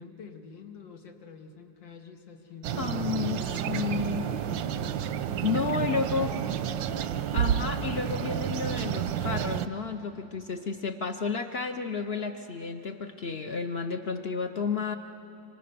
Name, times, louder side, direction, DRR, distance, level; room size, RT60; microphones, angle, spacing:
voice 1, 0.0-7.3, left 6 dB, 85° left, 3 dB, 2.3 m, -47 dB
sound 1, 2.6-9.7, right 9 dB, 85° right, 1.5 m, -30 dB
voice 2, 2.8-4.3 5.4-6.3 7.3-15.0, left 4 dB, 60° left, 7 dB, 0.6 m, -31 dB
27.0 x 25.0 x 6.8 m, 3.0 s
omnidirectional pair, 2.0 m